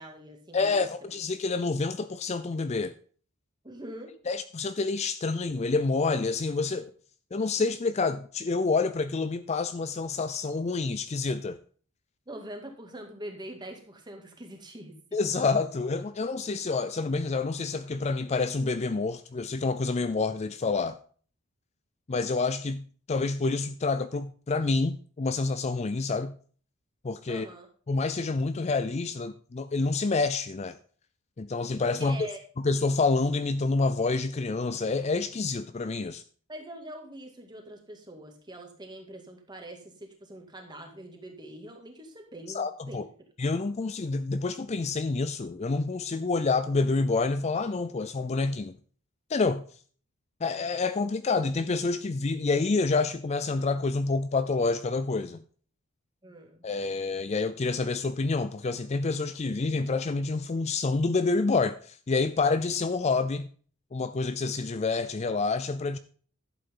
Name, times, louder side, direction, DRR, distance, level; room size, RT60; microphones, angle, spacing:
voice 1, 0.0-0.8 3.6-4.1 12.3-15.2 27.3-27.7 32.0-32.4 36.5-43.1 56.2-56.7, right 1 dB, 20° right, 2.2 m, -44 dB
voice 2, 0.5-2.9 4.3-6.9 7.3-11.6 15.1-21.0 22.1-26.3 27.0-27.5 27.9-30.8 31.4-32.3 32.6-36.2 42.5-43.0 43.4-48.7 49.3-49.6 50.4-55.4 56.6-63.5 63.9-66.0, left 3 dB, 30° left, 0.4 m, -28 dB
11.5 x 8.4 x 3.8 m
head